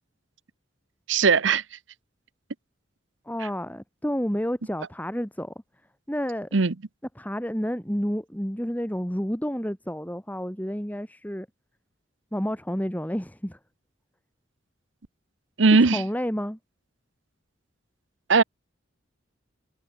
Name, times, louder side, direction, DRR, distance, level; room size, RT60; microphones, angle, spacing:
voice 1, 1.1-1.6 6.5-6.7 15.6-16.0 18.3-18.4, right 4 dB, 75° right, 0.8 m, -18 dB
voice 2, 3.3-5.5 6.1-6.5 7.2-11.5 12.3-13.6 15.8-16.6, equal, 10° left, 3.8 m, -30 dB
head